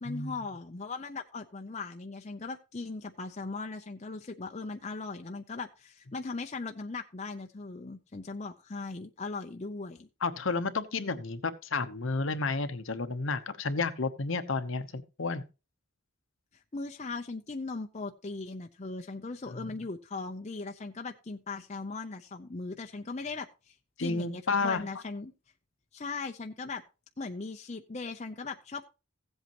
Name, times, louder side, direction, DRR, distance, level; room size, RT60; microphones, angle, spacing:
voice 1, 0.0-10.1 16.7-25.3 25.9-26.8 27.2-28.8, left 3 dB, 30° left, 0.6 m, -39 dB
voice 2, 10.2-15.4 19.6-19.7 24.0-24.8, left 4 dB, 60° left, 0.9 m, -31 dB
15.5 x 8.0 x 3.0 m
head